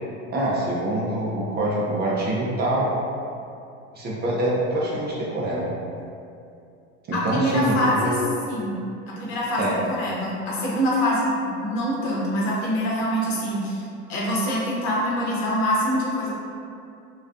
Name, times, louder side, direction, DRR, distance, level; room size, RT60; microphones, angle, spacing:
voice 1, 0.3-2.9 4.0-5.7 7.1-8.2 9.6-9.7, right 1 dB, 30° right, -5 dB, 0.4 m, -25 dB
voice 2, 7.1-8.2 8.5-8.8 9.1-16.3, equal, 65° left, -5 dB, 0.8 m, -25 dB
2.4 x 2.2 x 2.4 m, 2.5 s
supercardioid pair, 100°, 36 cm